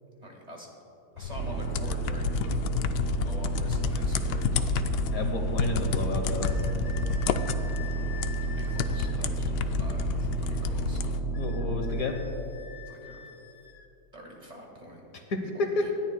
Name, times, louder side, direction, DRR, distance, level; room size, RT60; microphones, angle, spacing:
voice 1, 0.2-0.7 1.2-4.8 8.5-11.0 12.9-13.3 14.1-15.0 15.5-15.9, right 1 dB, 25° right, -1 dB, 1.8 m, -46 dB
sound 1, 1.2-11.2, left 7 dB, 85° left, 1.2 m, -31 dB
sound 2, 1.4-12.0, right 4 dB, 60° right, 0.7 m, -32 dB
voice 2, 5.1-6.5 11.4-12.1 15.3-15.8, left 3 dB, 60° left, 3 dB, 1.4 m, -30 dB
sound 3, 6.4-9.2 11.3-13.9, left 9 dB, 40° left, 0.7 m, -46 dB
26.5 x 11.0 x 2.3 m, 2.9 s
omnidirectional pair, 1.8 m